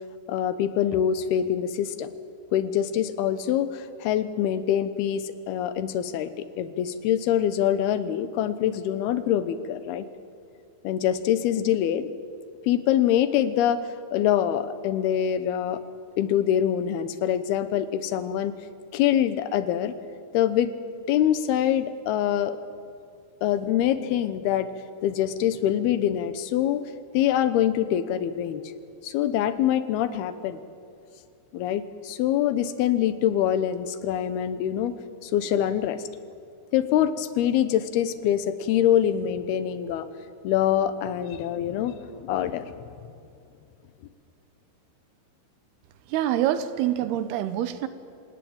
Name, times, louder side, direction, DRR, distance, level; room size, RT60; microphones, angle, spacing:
voice 1, 0.3-2.1 2.5-10.1 10.8-12.1 12.7-13.8 14.1-15.8 16.2-18.5 18.9-19.9 20.3-20.7 21.1-22.6 23.4-24.7 25.0-26.8 27.1-28.6 29.0-30.6 31.5-34.9 35.2-36.0 36.7-40.1 40.4-42.7, left 10 dB, 80° left, 2.9 m, -24 dB
voice 2, 46.1-47.9, right 12 dB, 90° right, 3.0 m, -25 dB
26.5 x 17.5 x 8.8 m
omnidirectional pair, 4.5 m